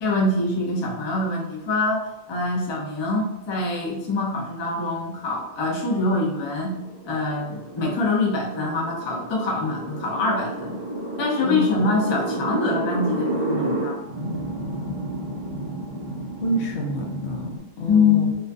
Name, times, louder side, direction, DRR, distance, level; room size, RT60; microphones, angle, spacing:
voice 1, 0.0-6.8 7.0-10.8 11.2-14.0 17.9-18.4, left 3 dB, 45° left, -2 dB, 0.3 m, -24 dB
sound 1, 5.0-17.6, right 1 dB, 40° right, 0.4 m, -31 dB
voice 2, 16.4-18.3, equal, 90° left, 0 dB, 0.9 m, -28 dB
2.3 x 2.2 x 2.5 m, 0.89 s
omnidirectional pair, 1.1 m